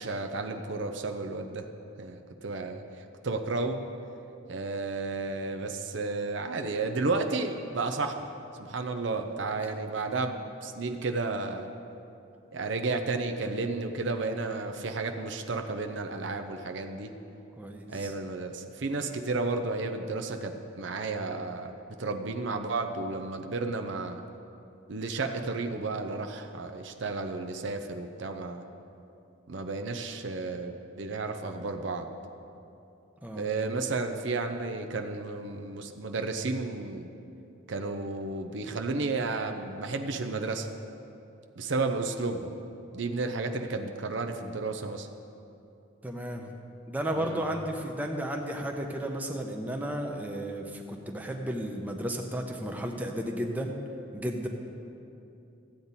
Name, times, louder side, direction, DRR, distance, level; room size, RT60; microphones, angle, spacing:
voice 1, 0.0-1.7 2.0-3.8 4.5-8.3 8.6-11.7 12.5-17.1 17.9-21.7 22.0-24.2 24.9-28.6 29.5-32.1 33.3-37.1 37.7-40.7 41.6-42.5 42.9-45.1 47.2-47.4, right 3 dB, 65° right, 5 dB, 0.6 m, -32 dB
voice 2, 17.6-18.1 33.2-33.5 46.0-46.5 46.9-53.8 54.1-54.5, right 1 dB, 10° right, 2 dB, 0.7 m, -33 dB
14.5 x 8.6 x 4.1 m, 2.7 s
head